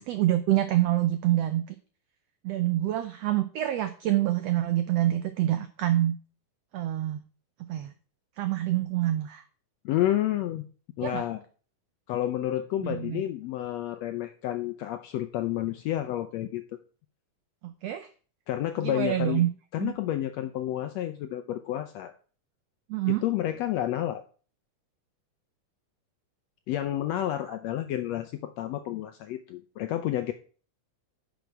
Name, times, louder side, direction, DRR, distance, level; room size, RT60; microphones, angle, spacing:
voice 1, 0.0-1.6 2.4-6.2 6.7-7.2 7.7-7.9 8.4-9.4 11.0-11.2 12.8-13.2 17.6-18.1 18.8-19.5 19.8-19.9 22.9-23.2, right 13 dB, 90° right, 10 dB, 1.4 m, -26 dB
voice 2, 9.8-10.6 11.0-11.4 12.1-16.6 18.5-19.5 19.7-22.1 23.1-24.2 26.7-30.3, left 13 dB, 80° left, 9 dB, 1.5 m, -30 dB
10.5 x 6.3 x 4.6 m, 0.39 s
omnidirectional pair, 3.6 m